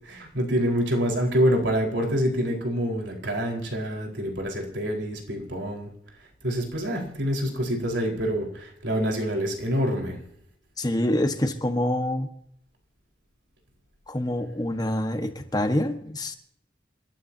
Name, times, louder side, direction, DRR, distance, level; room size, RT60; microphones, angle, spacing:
voice 1, 0.0-5.9 6.4-10.2, equal, 90° right, 1 dB, 4.5 m, -26 dB
voice 2, 10.8-12.3 14.1-16.4, left 1 dB, 20° left, 6 dB, 1.4 m, -26 dB
28.5 x 12.5 x 2.8 m, 0.67 s
head